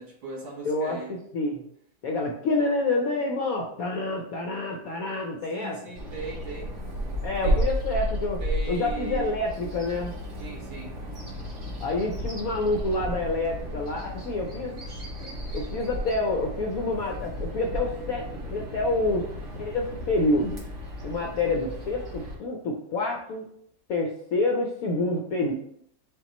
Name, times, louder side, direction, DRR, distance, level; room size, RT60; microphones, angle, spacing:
voice 1, 0.0-1.1 5.5-6.7 7.4-7.6 8.4-9.3 10.4-10.9, right 4 dB, 75° right, -4 dB, 2.4 m, -38 dB
voice 2, 0.6-1.6 2.0-5.8 7.2-8.4 8.7-10.1 11.8-14.7 15.5-18.2 18.5-19.3 19.6-20.6 21.0-23.4 23.9-25.5, left 2 dB, 70° left, 1 dB, 0.8 m, -27 dB
Bird vocalization bird call bird song, 5.9-22.4, equal, 45° right, 1.3 m, -33 dB
5.5 x 2.3 x 4.1 m, 0.69 s
omnidirectional pair, 2.0 m